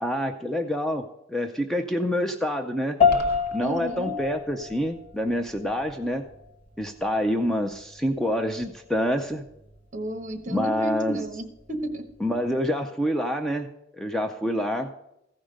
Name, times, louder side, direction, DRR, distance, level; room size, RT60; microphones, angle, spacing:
voice 1, 0.0-3.0 3.5-6.2 6.8-9.4 10.5-11.2 12.2-13.7 14.0-14.9, equal, ahead, 5 dB, 0.5 m, -27 dB
sound 1, 3.0-12.6, left 6 dB, 30° left, 1.5 m, -30 dB
sound 2, 3.1-3.6, equal, 55° left, 1.4 m, -37 dB
voice 2, 3.6-4.1 9.9-12.3, right 2 dB, 40° right, 7 dB, 1.1 m, -33 dB
14.5 x 5.1 x 6.3 m, 0.86 s
head